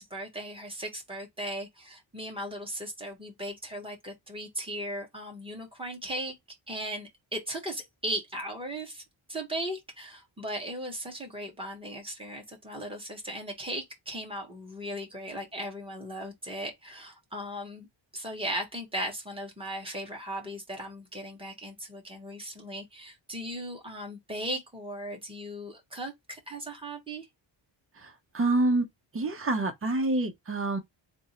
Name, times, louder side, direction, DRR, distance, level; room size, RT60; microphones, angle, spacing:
voice 1, 0.0-6.3 6.7-9.0 9.3-17.9 18.1-27.3, right 1 dB, 10° right, 1.2 m, -37 dB
voice 2, 28.0-28.9 29.1-30.8, right 2 dB, 30° right, 0.7 m, -27 dB
3.5 x 2.0 x 4.2 m
wide cardioid pair, 160°, 46 cm